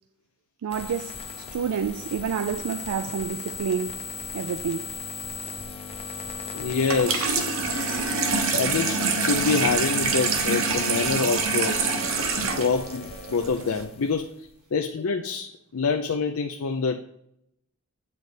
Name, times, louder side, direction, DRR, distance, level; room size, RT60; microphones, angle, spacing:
voice 1, 0.6-4.0 4.3-4.8 10.4-10.7, right 7 dB, 90° right, 0.3 m, -29 dB
sound 1, 0.7-14.5, left 4 dB, 25° left, 0.6 m, -37 dB
voice 2, 6.5-7.4 8.5-11.8 12.4-17.0, left 4 dB, 70° left, 0.5 m, -26 dB
Water tap faucet / Sink (filling or washing), 6.8-13.8, right 4 dB, 65° right, 1.1 m, -26 dB
8.3 x 4.0 x 5.0 m
head